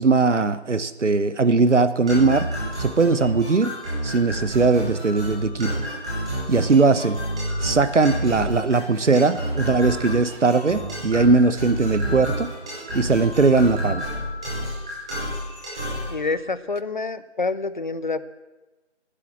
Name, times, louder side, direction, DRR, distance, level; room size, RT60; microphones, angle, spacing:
voice 1, 0.0-2.5 2.8-3.7 4.0-5.7 6.5-7.2 7.6-12.5 12.9-14.0, right 3 dB, 85° right, 14 dB, 1.0 m, -19 dB
sound 1, 2.1-16.1, right 1 dB, 5° right, 1.0 m, -29 dB
voice 2, 16.1-18.2, left 3 dB, 45° left, 15 dB, 0.7 m, -27 dB
13.5 x 10.0 x 7.5 m, 1.1 s
figure-of-eight pair, 160°, 35 cm